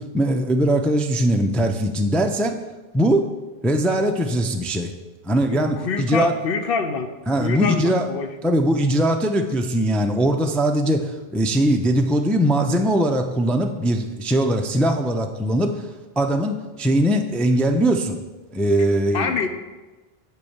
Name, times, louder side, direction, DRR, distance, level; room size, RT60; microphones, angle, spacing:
voice 1, 0.0-2.5 2.9-3.2 3.6-4.9 5.3-6.3 7.3-8.1 8.4-11.0 11.3-15.7 16.2-18.2 18.5-19.4, right 1 dB, ahead, 4 dB, 0.3 m, -20 dB
voice 2, 5.5-7.1 7.4-8.3 19.1-19.5, left 5 dB, 65° left, 8 dB, 0.9 m, -25 dB
8.2 x 4.6 x 7.2 m, 1.2 s
omnidirectional pair, 1.1 m